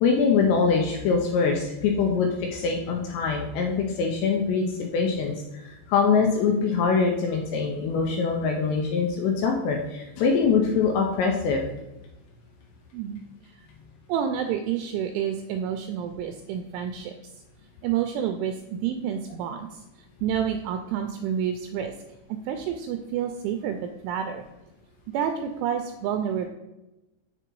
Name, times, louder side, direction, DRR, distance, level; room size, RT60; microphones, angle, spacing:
voice 1, 0.0-5.3 5.6-11.6, left 5 dB, 80° left, 1 dB, 2.6 m, -23 dB
voice 2, 14.1-17.1 17.8-19.8 20.2-21.9 22.5-24.4 25.1-26.5, right 8 dB, 85° right, 6 dB, 2.8 m, -29 dB
7.5 x 6.8 x 4.6 m, 1.0 s
omnidirectional pair, 5.8 m